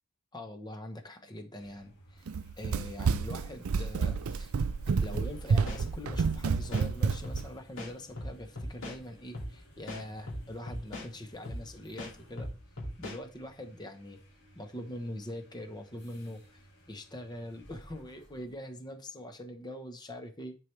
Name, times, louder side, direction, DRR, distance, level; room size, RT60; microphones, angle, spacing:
voice 1, 0.3-2.3 2.6-4.5 5.0-12.5 13.0-14.2 14.5-16.6 16.9-20.6, left 1 dB, 20° left, 1.0 m, -43 dB
sound 1, 1.4-18.6, right 1 dB, 50° left, 2.8 m, -57 dB
Run, 2.3-7.5, right 5 dB, 85° right, 0.5 m, -29 dB
sound 2, 5.1-5.3 5.7-6.9 7.2-7.4 7.8-9.0 9.3-9.5 9.9-11.1 11.4-11.6 12.0-13.2, left 1 dB, 80° left, 2.5 m, -39 dB
10.5 x 4.7 x 3.3 m
head